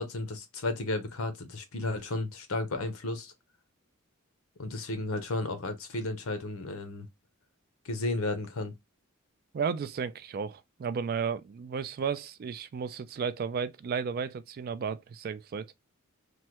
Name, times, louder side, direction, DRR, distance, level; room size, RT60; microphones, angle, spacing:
voice 1, 0.0-3.3 4.6-7.1 7.8-8.7, left 2 dB, 75° left, 0.8 m, -33 dB
voice 2, 9.5-15.7, right 6 dB, 45° right, 0.3 m, -33 dB
3.3 x 2.1 x 2.8 m
head